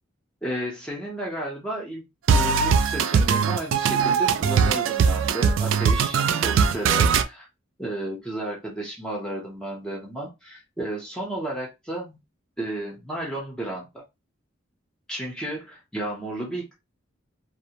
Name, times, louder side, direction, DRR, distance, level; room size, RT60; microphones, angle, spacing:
voice 1, 0.4-7.5 7.8-12.2 12.6-14.0 15.1-16.7, right 1 dB, 5° left, -2 dB, 0.7 m, -33 dB
sound 1, 2.3-7.2, right 6 dB, 80° right, 0.3 m, -20 dB
2.5 x 2.0 x 2.8 m, 0.23 s
head